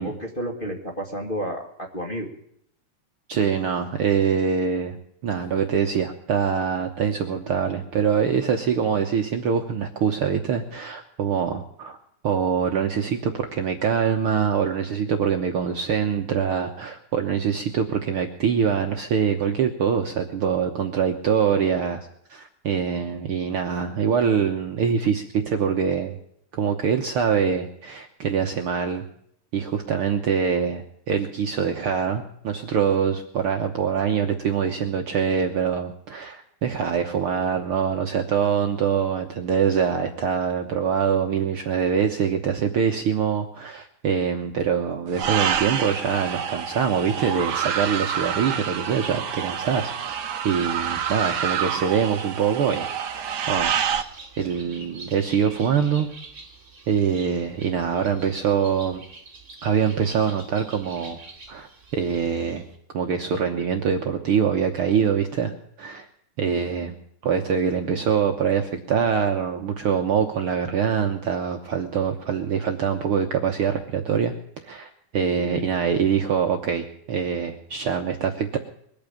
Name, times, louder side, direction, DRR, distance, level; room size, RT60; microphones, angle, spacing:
voice 1, 0.0-2.3 75.4-75.7, equal, 20° left, 0 dB, 1.7 m, -31 dB
voice 2, 3.3-12.0 12.2-26.2 26.5-29.0 29.5-52.9 53.1-53.7 54.4-56.1 56.9-59.0 59.6-61.2 61.5-62.6 62.9-65.5 65.8-66.1 66.4-66.9 67.2-74.3 74.6-78.6, right 7 dB, 60° right, 4 dB, 1.6 m, -24 dB
sound 1, 45.1-54.0, right 8 dB, 85° right, 0.9 m, -27 dB
Bird, 53.0-62.8, right 3 dB, 25° right, 3.1 m, -46 dB
22.0 x 8.8 x 7.1 m, 0.71 s
omnidirectional pair, 3.4 m